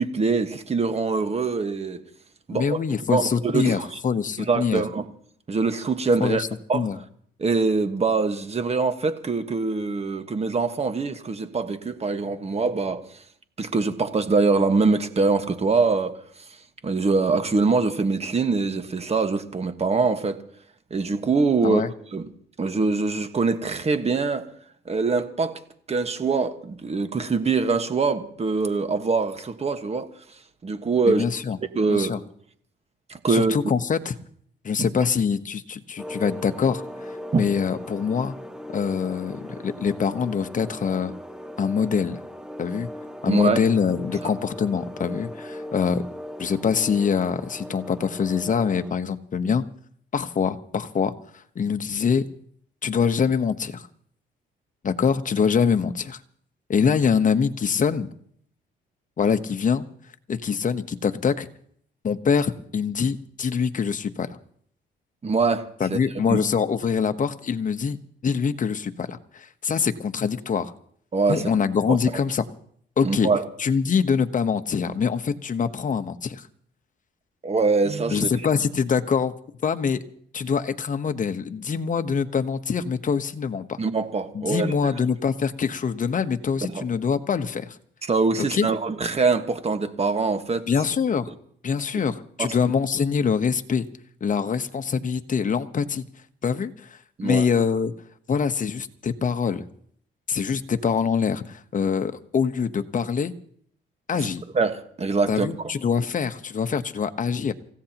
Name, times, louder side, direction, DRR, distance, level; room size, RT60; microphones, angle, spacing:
voice 1, 0.0-2.0 2.5-2.8 3.1-4.0 4.5-5.0 5.5-6.4 6.7-6.9 7.4-13.0 13.6-16.2 16.8-20.4 20.9-21.8 22.1-22.2 22.6-24.5 24.8-25.6 25.9-30.1 30.6-31.2 31.7-32.1 33.1-33.5 34.8-34.9 37.3-37.4 43.3-43.6 65.2-66.0 66.3-66.4 71.1-71.5 71.9-72.0 73.0-73.5 77.4-78.3 83.8-84.9 86.7-86.8 88.1-90.6 91.9-92.1 92.4-92.6 97.2-97.5 104.1-104.3 104.5-105.5, right 4 dB, 30° right, 1.5 m, -23 dB
voice 2, 2.5-4.8 6.2-6.5 6.7-7.0 21.6-21.9 31.1-31.6 31.9-32.2 33.3-34.1 34.6-38.3 38.7-41.1 41.6-42.2 42.6-42.9 43.2-46.1 46.4-49.6 50.1-51.1 51.5-52.3 52.8-53.9 54.8-56.2 56.7-58.1 59.2-59.9 60.3-61.5 62.0-64.4 65.8-68.0 68.2-70.7 71.3-72.5 73.0-73.3 73.6-76.5 78.1-79.3 79.6-80.0 80.3-83.8 84.3-87.8 88.4-88.7 90.7-91.3 91.6-93.9 94.2-96.0 96.4-97.9 98.3-99.6 100.3-103.3 104.1-104.4 105.3-107.5, left 6 dB, 40° left, 1.1 m, -24 dB
sound 1, 36.0-48.9, equal, 5° right, 0.8 m, -38 dB
28.0 x 16.0 x 3.0 m
cardioid pair, 90°, 20 cm